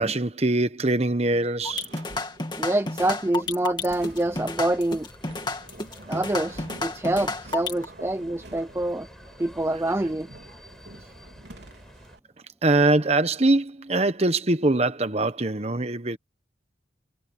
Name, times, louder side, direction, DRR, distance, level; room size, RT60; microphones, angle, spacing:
voice 1, 0.0-1.9 12.6-16.2, right 2 dB, 35° right, 1.2 m, -23 dB
sound 1, 1.6-7.9, left 3 dB, 25° left, 2.5 m, -31 dB
sound 2, 1.6-12.2, right 1 dB, 65° right, 3.8 m, -48 dB
voice 2, 2.6-5.1 6.1-9.1 9.4-10.3, right 1 dB, 15° right, 0.4 m, -26 dB
sound 3, 3.8-12.2, equal, 5° left, 5.3 m, -49 dB
head